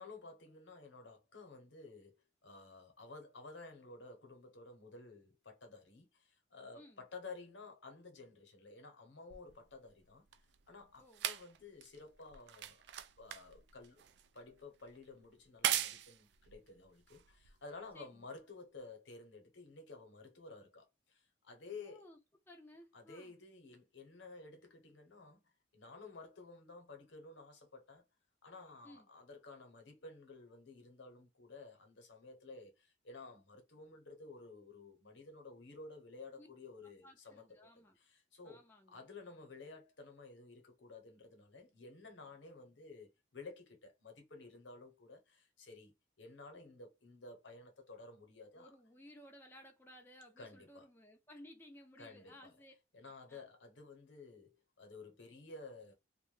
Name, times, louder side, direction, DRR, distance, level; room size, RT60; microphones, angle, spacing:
voice 1, 0.0-10.2 10.7-12.8 13.2-14.0 14.3-22.1 22.9-28.0 28.4-37.6 38.0-38.6 38.9-48.7 50.4-50.9 52.0-52.5 52.9-55.9, left 3 dB, 75° left, 0.9 m, -53 dB
sound 1, 9.3-17.9 18.8-18.9, right 11 dB, 65° right, 0.3 m, -42 dB
voice 2, 17.9-18.3 21.8-22.2 22.5-23.4 28.8-29.1 36.4-36.5 36.8-38.0 38.4-39.1 48.5-52.7 53.0-53.5, left 1 dB, 10° left, 0.4 m, -58 dB
2.6 x 2.2 x 3.1 m
head